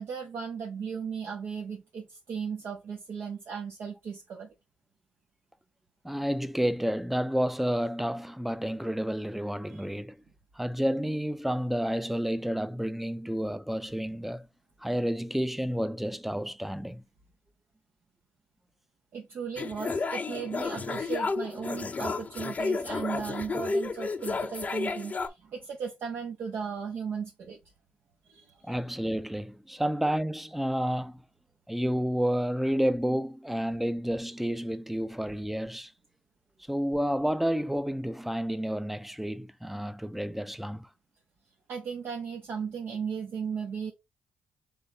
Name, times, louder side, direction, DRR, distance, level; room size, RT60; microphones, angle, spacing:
voice 1, 0.0-4.5 9.7-9.9 19.1-27.6 28.3-28.8 41.7-43.9, right 6 dB, 75° right, 1.1 m, -36 dB
voice 2, 6.0-10.2 10.6-14.5 14.8-17.0 28.6-31.2 31.7-35.9 36.7-40.9, equal, 5° right, 0.5 m, -30 dB
sound 1, 19.6-25.3, left 4 dB, 40° left, 0.7 m, -32 dB
3.8 x 3.4 x 3.9 m
supercardioid pair, 60°, 4 cm